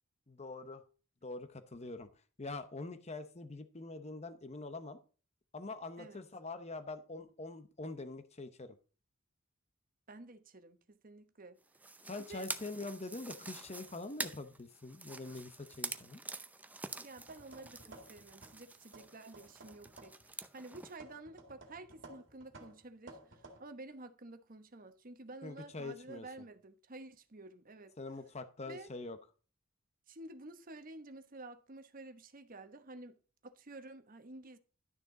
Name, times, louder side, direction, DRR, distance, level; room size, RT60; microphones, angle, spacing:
voice 1, 0.3-0.8 1.2-5.0 5.5-8.8 12.1-16.2 25.4-26.3 28.0-29.2, left 2 dB, 30° left, 0.8 m, -44 dB
voice 2, 10.1-11.6 12.3-12.5 17.0-27.9 28.7-28.9 30.1-33.2 33.4-34.6, right 2 dB, 45° right, 1.0 m, -51 dB
sound 1, 11.7-21.0, right 3 dB, 10° right, 0.6 m, -47 dB
sound 2, 17.1-18.6 18.9-20.3 20.7-23.6, right 2 dB, 60° right, 2.1 m, -56 dB
12.0 x 6.6 x 3.8 m
head